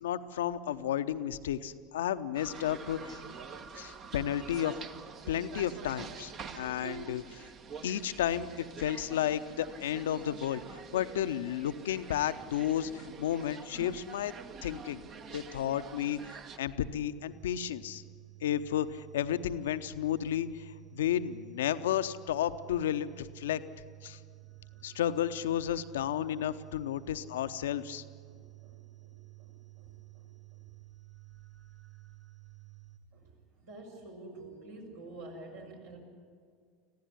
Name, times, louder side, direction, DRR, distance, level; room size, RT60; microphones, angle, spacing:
voice 1, 0.0-3.2 3.8-4.7 5.3-7.5 7.8-14.3 14.6-15.0 15.3-18.0 18.4-23.6 24.0-24.2 24.8-28.0, left 10 dB, 65° left, 12 dB, 0.8 m, -32 dB
sound 1, 2.3-16.6, right 6 dB, 40° right, 1.3 m, -47 dB
sound 2, 17.3-33.0, right 21 dB, 25° right, 1.9 m, -53 dB
voice 2, 28.3-30.6 33.1-36.0, right 2 dB, 65° right, 0 dB, 5.7 m, -50 dB
26.0 x 15.5 x 9.9 m, 2.2 s
figure-of-eight pair, 75°, 0 cm